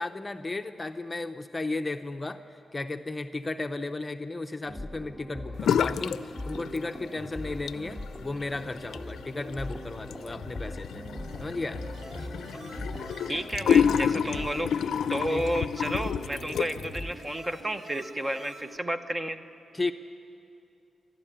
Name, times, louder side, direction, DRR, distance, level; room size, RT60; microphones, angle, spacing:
voice 1, 0.0-2.4 2.7-11.0 11.4-11.8 14.2-14.3 15.3-15.4 19.7-19.9, left 2 dB, 20° left, 7 dB, 0.7 m, -34 dB
sound 1, 4.7-17.1, left 1 dB, 5° right, 1.4 m, -40 dB
sound 2, 5.6-6.2 6.5-7.1 7.5-17.0, left 8 dB, 90° left, 0.4 m, -29 dB
sound 3, 10.9-18.8, right 2 dB, 65° right, 1.7 m, -48 dB
voice 2, 13.3-14.8 15.1-19.4, right 1 dB, 20° right, 9 dB, 1.0 m, -31 dB
28.0 x 12.5 x 9.0 m, 2.6 s
cardioid pair, 100°, 0 cm